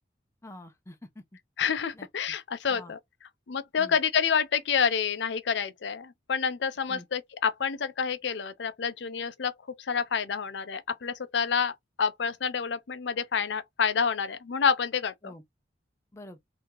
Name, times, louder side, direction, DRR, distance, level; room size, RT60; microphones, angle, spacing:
voice 1, 0.4-1.2 1.9-2.4 2.7-2.9 3.8-4.0 6.9-7.1 15.2-15.4 16.1-16.4, left 1 dB, 15° left, 0.5 m, -46 dB
voice 2, 1.6-3.0 3.5-11.7 12.0-15.3, left 6 dB, 65° left, 0.5 m, -28 dB
3.5 x 2.8 x 3.0 m
head